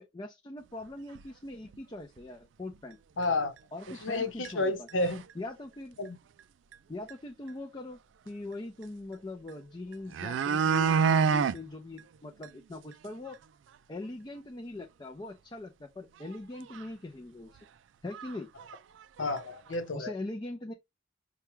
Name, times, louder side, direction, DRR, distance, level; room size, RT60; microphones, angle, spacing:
voice 1, 0.0-3.0 3.7-4.9 5.4-6.0 6.9-8.0 8.2-13.4 13.9-17.7 18.0-18.5 19.9-20.7, left 2 dB, 20° left, 0.4 m, -41 dB
sound 1, 1.1-1.2 1.7-1.8 2.2-2.3 3.2-3.3 3.9-4.2 4.4-4.5 4.9-5.3 6.7-6.8 7.1-7.2 9.5-9.6 9.9-11.6 12.0-12.1 12.4-12.5 12.9-13.0 13.3-13.4 16.2-16.3 16.7-16.8 17.6-17.7 18.1-18.3 18.6-19.4 19.7-19.8, right 6 dB, 70° right, 0.3 m, -28 dB
voice 2, 3.2-3.5 3.9-5.2 6.0-6.2 19.2-20.1, left 2 dB, 85° left, 0.9 m, -31 dB
5.7 x 2.3 x 3.0 m
head